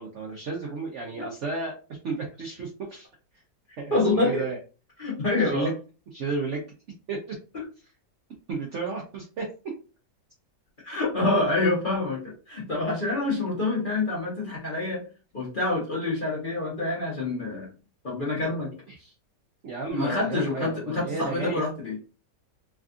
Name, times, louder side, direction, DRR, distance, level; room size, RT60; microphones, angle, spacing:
voice 1, 0.0-3.1 3.8-4.6 5.3-5.7 6.1-6.6 7.1-7.4 8.5-9.5 18.9-19.0 19.6-21.6, right 4 dB, 65° right, 0 dB, 0.7 m, -33 dB
voice 2, 3.9-4.4 5.0-5.7 10.8-15.0 15.3-17.7 18.0-18.7 19.0-19.1 19.9-22.0, left 2 dB, 35° left, -4 dB, 0.9 m, -27 dB
3.4 x 2.4 x 2.4 m, 0.34 s
omnidirectional pair, 1.9 m